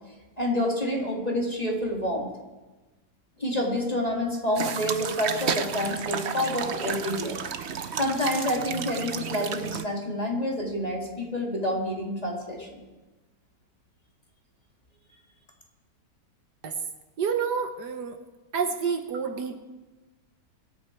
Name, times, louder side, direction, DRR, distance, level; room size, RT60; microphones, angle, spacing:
voice 1, 0.4-2.3 3.4-7.4 7.9-12.8, left 1 dB, 20° left, -1 dB, 2.4 m, -28 dB
sound 1, 4.6-9.8, right 7 dB, 55° right, 0.8 m, -32 dB
voice 2, 17.2-18.2 18.5-19.6, right 6 dB, 70° right, 7 dB, 1.6 m, -28 dB
23.0 x 8.7 x 4.6 m, 1.1 s
omnidirectional pair, 1.9 m